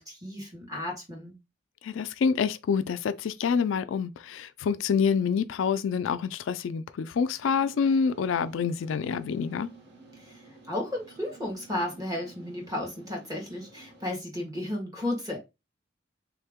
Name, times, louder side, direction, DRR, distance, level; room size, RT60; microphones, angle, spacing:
voice 1, 0.0-1.3 10.1-15.4, left 1 dB, 20° right, 1.3 m, -34 dB
voice 2, 1.8-9.7, left 6 dB, 90° left, 0.3 m, -27 dB
sound 1, 7.4-14.1, right 4 dB, 55° right, 1.2 m, -52 dB
3.5 x 2.8 x 3.5 m
head